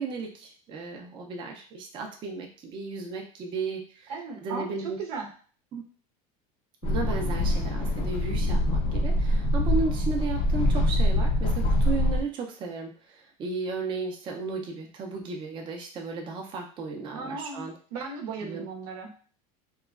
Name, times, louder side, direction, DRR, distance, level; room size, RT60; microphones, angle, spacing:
voice 1, 0.0-4.1 4.4-5.0 5.7-5.8 6.8-17.7 18.4-18.7, right 4 dB, 25° right, 1 dB, 0.4 m, -34 dB
voice 2, 4.1-5.3 17.1-19.1, right 5 dB, 90° right, 2 dB, 0.8 m, -36 dB
sound 1, 6.8-12.2, left 1 dB, 30° left, 0.4 m, -24 dB
2.9 x 2.2 x 2.3 m, 0.41 s
supercardioid pair, 150°, 19 cm